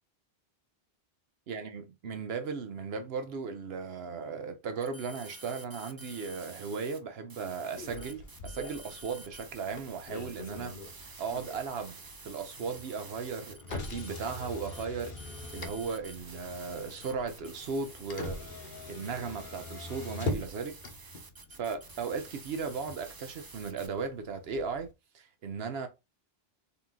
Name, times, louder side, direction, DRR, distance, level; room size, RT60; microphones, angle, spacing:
voice 1, 1.5-10.7 11.0-15.1 15.5-18.4 18.6-20.8 21.6-25.9, right 5 dB, 75° right, 0.9 m, -37 dB
sound 1, 4.8-7.0 7.3-23.9, right 3 dB, 35° right, 0.3 m, -50 dB
Motor vehicle (road), 7.8-24.9, left 2 dB, 55° left, 1.0 m, -43 dB
4.1 x 2.9 x 3.6 m
omnidirectional pair, 1.0 m